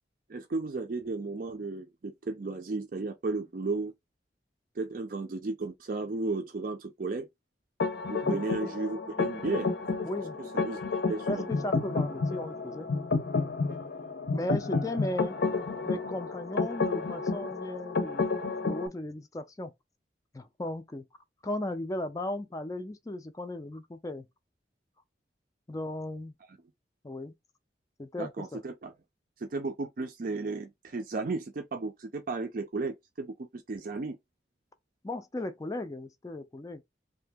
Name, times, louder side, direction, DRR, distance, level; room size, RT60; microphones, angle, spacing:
voice 1, 0.3-3.9 4.8-7.3 8.1-9.7 10.5-11.5 14.2-14.4 28.2-28.9 29.4-34.2, right 3 dB, 50° right, 0.5 m, -34 dB
sound 1, 7.8-18.9, left 4 dB, 70° left, 0.6 m, -31 dB
voice 2, 10.0-10.4 11.3-12.9 14.3-15.4 15.8-18.3 18.6-19.7 20.3-21.1 21.4-24.3 25.7-26.3 27.0-27.3 28.0-28.6 35.0-36.8, left 1 dB, 20° left, 0.4 m, -36 dB
2.7 x 2.6 x 3.4 m
head